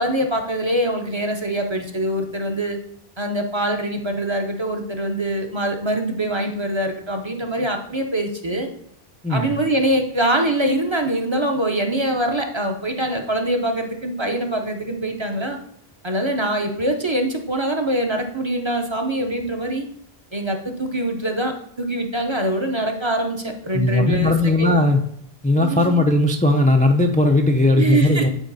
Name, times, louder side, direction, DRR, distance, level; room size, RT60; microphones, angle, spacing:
voice 1, 0.0-2.8 3.2-8.7 9.3-15.6 16.0-19.9 20.3-24.7 25.6-26.0 27.8-28.3, right 1 dB, 30° right, 4 dB, 0.7 m, -24 dB
voice 2, 23.7-25.0 25.4-28.3, left 2 dB, 15° left, 3 dB, 0.3 m, -17 dB
9.8 x 4.5 x 4.0 m, 0.68 s
omnidirectional pair, 1.1 m